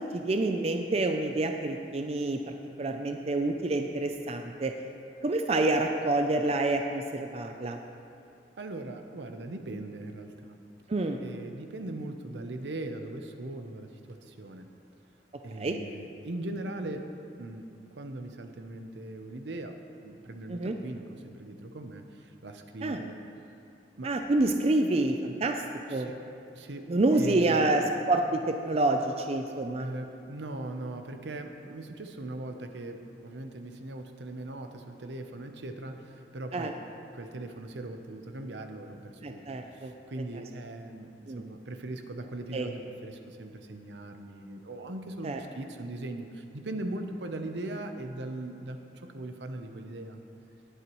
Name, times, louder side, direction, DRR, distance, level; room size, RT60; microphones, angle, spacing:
voice 1, 0.0-4.7 5.2-7.8 10.9-11.2 15.6-15.8 20.5-20.8 22.8-23.0 24.0-25.6 25.9-26.1 26.9-27.8 28.1-29.9 36.5-36.7 39.2-39.9 41.3-41.4 42.5-42.7 45.2-45.4, right 2 dB, 35° right, 4 dB, 0.5 m, -28 dB
voice 2, 8.6-10.6 11.2-14.7 15.4-17.1 17.4-23.2 23.9-24.1 25.9-26.2 26.5-27.7 29.8-36.8 37.1-39.4 39.7-50.2, right 2 dB, 75° right, 6 dB, 0.8 m, -40 dB
19.0 x 8.0 x 3.1 m, 2.6 s
head